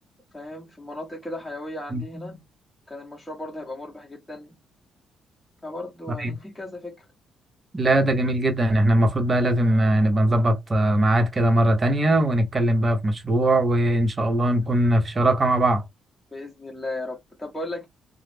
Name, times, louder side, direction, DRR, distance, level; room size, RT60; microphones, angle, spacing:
voice 1, 0.3-2.4 2.9-4.5 5.6-7.0 16.3-17.9, left 1 dB, 10° left, 1.0 m, -36 dB
voice 2, 7.7-15.8, right 1 dB, 30° right, 0.8 m, -20 dB
2.3 x 2.0 x 3.3 m
cardioid pair, 90°, 0 cm